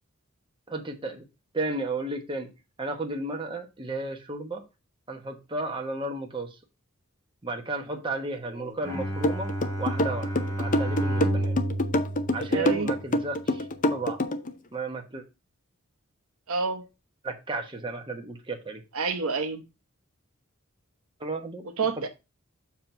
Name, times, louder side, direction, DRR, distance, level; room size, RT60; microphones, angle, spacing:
voice 1, 0.7-1.2 1.5-2.5 2.8-4.6 5.1-6.5 7.4-9.5 9.8-10.3 10.6-11.6 12.3-14.2 14.7-15.2 17.2-18.8 21.2-21.6, right 2 dB, 25° right, 1.1 m, -33 dB
Bowed string instrument, 8.8-13.2, right 1 dB, 15° left, 1.0 m, -31 dB
sound 1, 9.2-14.5, left 1 dB, 40° left, 0.6 m, -26 dB
voice 2, 12.5-12.9 16.5-16.9 18.9-19.6 21.8-22.1, right 4 dB, 80° right, 0.9 m, -28 dB
7.2 x 3.0 x 5.8 m
head